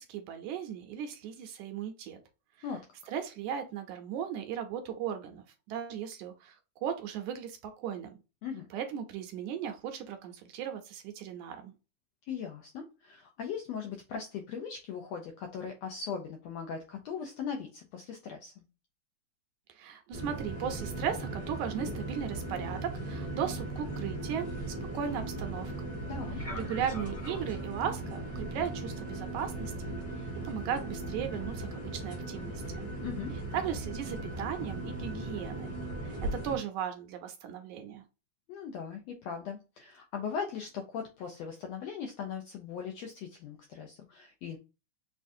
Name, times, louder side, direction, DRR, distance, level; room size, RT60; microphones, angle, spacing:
voice 1, 0.0-2.2 2.6-2.7 3.1-8.2 8.7-11.7 19.7-25.7 26.4-29.7 30.2-32.8 33.5-35.7 36.0-38.0, right 8 dB, 80° right, 7 dB, 1.9 m, -37 dB
voice 2, 12.2-18.6 26.1-26.4 33.0-33.3 38.5-44.6, left 6 dB, 80° left, 3 dB, 1.5 m, -39 dB
sound 1, 20.1-36.6, right 2 dB, 25° left, 0.7 m, -38 dB
6.3 x 2.4 x 2.6 m, 0.29 s
omnidirectional pair, 3.7 m